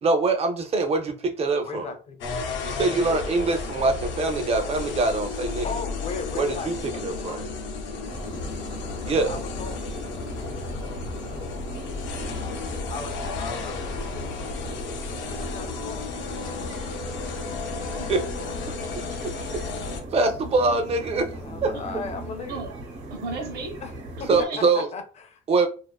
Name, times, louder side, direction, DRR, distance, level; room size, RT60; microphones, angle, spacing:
voice 1, 0.0-1.9 2.6-5.7 6.3-6.8 7.0-7.4 9.0-9.4 18.1-18.2 19.2-19.6 20.1-21.3 21.6-21.7 24.3-24.9 25.5-25.7, right 3 dB, 35° right, 0.4 m, -24 dB
voice 2, 1.6-2.2 5.6-7.5 9.0-10.0 12.9-16.1 21.3-22.6 23.8-23.9 24.2-24.5 24.7-25.4, left 5 dB, 35° left, 0.5 m, -37 dB
sound 1, 2.2-20.0, left 4 dB, 85° left, 0.6 m, -33 dB
sound 2, 8.0-24.5, right 1 dB, 90° right, 0.9 m, -39 dB
voice 3, 18.8-19.5 21.7-21.8 22.5-22.7 23.1-23.7 24.2-24.7, right 3 dB, 60° right, 0.8 m, -35 dB
2.4 x 2.3 x 2.2 m
cardioid pair, 130°, 19 cm